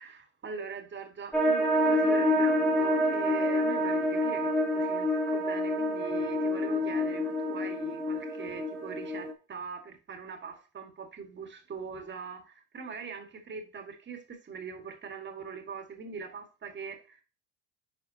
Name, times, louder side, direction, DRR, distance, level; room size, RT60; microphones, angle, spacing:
voice 1, 0.0-17.2, right 5 dB, 30° right, 1.6 m, -42 dB
sound 1, 1.3-9.3, left 1 dB, ahead, 1.3 m, -27 dB
10.0 x 4.2 x 2.7 m
cardioid pair, 110°, 40 cm